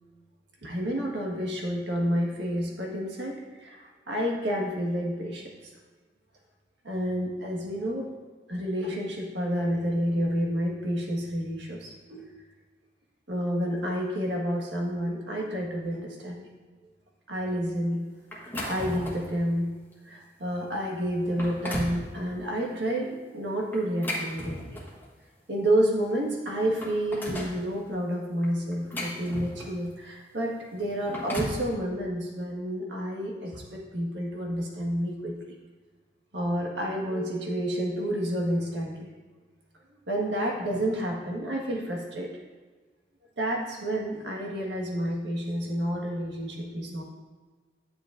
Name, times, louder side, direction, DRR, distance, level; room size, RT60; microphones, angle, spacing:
voice 1, 0.6-5.5 6.8-8.1 8.5-12.2 13.3-16.5 17.3-18.1 18.7-24.8 25.5-35.3 36.3-39.1 40.1-42.4 43.4-47.0, equal, 85° right, -1 dB, 1.5 m, -30 dB
sound 1, 18.3-19.3 19.9-20.1 20.7-20.8 21.2-22.0 23.7-25.1 26.1-26.2 26.5-27.6 28.4-29.9 30.9-31.7, equal, 10° left, 1.3 m, -35 dB
9.9 x 8.0 x 2.6 m, 1.4 s
head